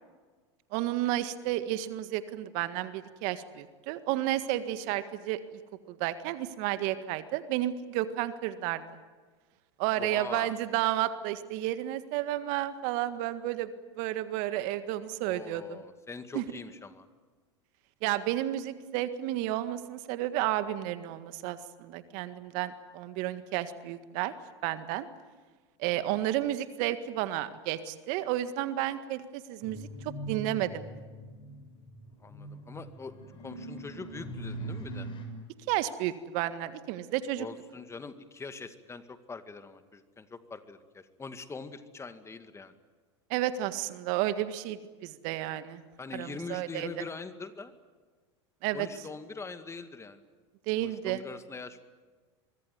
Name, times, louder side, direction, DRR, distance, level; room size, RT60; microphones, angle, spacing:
voice 1, 0.7-5.4 5.9-8.8 9.8-13.7 14.0-15.6 16.3-16.4 18.0-24.3 24.6-25.1 25.8-30.9 35.7-37.5 43.3-45.8 46.1-46.9 48.6-48.9 50.7-51.2, right 13 dB, 60° right, 11 dB, 1.8 m, -32 dB
voice 2, 10.0-10.5 15.2-17.1 25.9-26.1 32.2-33.1 33.4-35.1 37.4-42.7 46.0-47.7 48.7-50.2 50.8-51.8, left 4 dB, 20° left, 10 dB, 2.1 m, -43 dB
sound 1, 29.6-35.3, right 2 dB, 35° left, 6.8 m, -41 dB
24.0 x 23.5 x 9.5 m, 1.4 s
hypercardioid pair, 90°, 15 cm